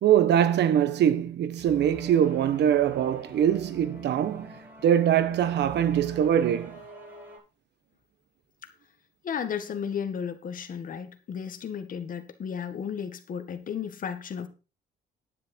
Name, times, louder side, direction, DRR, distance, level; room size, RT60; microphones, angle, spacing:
voice 1, 0.0-4.5 4.8-6.8, right 10 dB, 75° right, 1.2 m, -23 dB
sound 1, 1.6-7.4, equal, 10° right, 6.5 m, -46 dB
voice 2, 9.2-14.5, left 7 dB, 50° left, 1.8 m, -34 dB
10.5 x 9.6 x 4.5 m
cardioid pair, 140°, 18 cm